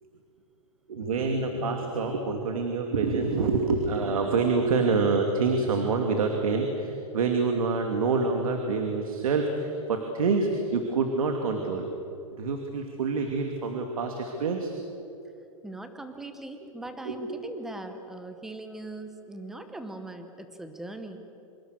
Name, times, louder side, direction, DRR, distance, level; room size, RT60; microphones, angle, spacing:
voice 1, 0.9-11.9 12.3-14.7 17.0-17.4, right 4 dB, 85° right, 3 dB, 2.7 m, -26 dB
voice 2, 15.6-21.2, right 2 dB, ahead, 7 dB, 1.0 m, -40 dB
26.5 x 25.5 x 6.6 m, 2.8 s
supercardioid pair, 175°, 18 cm